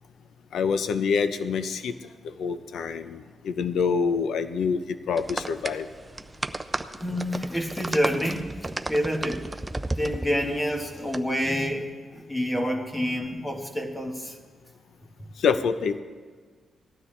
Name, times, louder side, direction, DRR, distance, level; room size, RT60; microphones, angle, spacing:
voice 1, 0.5-1.9 2.2-5.9 15.4-16.0, left 6 dB, 80° left, 10 dB, 0.6 m, -26 dB
sound 1, 5.2-11.2, right 2 dB, 15° right, 0.5 m, -34 dB
voice 2, 7.0-8.5 8.9-9.4 10.0-14.4, equal, 15° left, 3 dB, 1.4 m, -28 dB
18.0 x 12.5 x 3.3 m, 1.5 s
cardioid pair, 120°, 0 cm